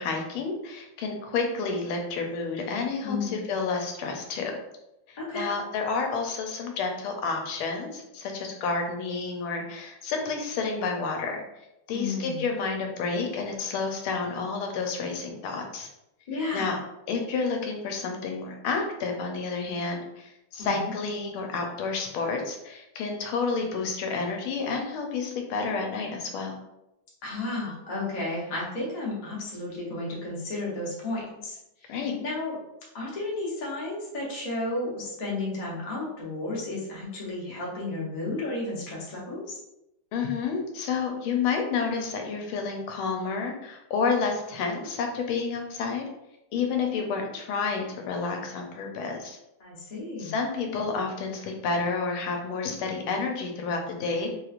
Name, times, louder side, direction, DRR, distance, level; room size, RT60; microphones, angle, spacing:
voice 1, 0.0-4.5 5.1-11.4 11.9-15.9 16.5-16.8 17.1-26.5 31.9-32.2 40.1-46.1 46.5-49.4 50.2-54.3, left 4 dB, 90° left, 3 dB, 1.5 m, -30 dB
voice 2, 3.0-3.4 5.2-5.5 11.9-12.4 16.3-16.8 20.6-20.9 27.2-32.6 32.9-39.6 49.6-50.3, left 2 dB, 40° left, -5 dB, 0.6 m, -33 dB
3.5 x 3.0 x 2.4 m, 0.89 s
omnidirectional pair, 2.2 m